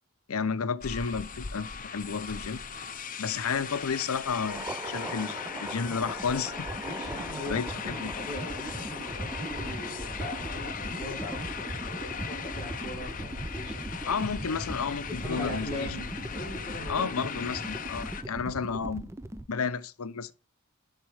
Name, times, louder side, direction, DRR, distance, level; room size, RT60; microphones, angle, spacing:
voice 1, 0.3-2.6 3.2-6.7 7.5-8.1 14.1-15.7 16.9-19.1 19.5-20.3, left 5 dB, 75° left, 0.6 m, -32 dB
sound 1, 0.8-18.2, left 6 dB, 40° left, 0.6 m, -38 dB
sound 2, 4.5-19.4, right 1 dB, 15° right, 0.4 m, -39 dB
voice 2, 6.8-14.3 14.8-17.6, left 1 dB, 20° left, 2.3 m, -41 dB
11.0 x 4.1 x 3.4 m
head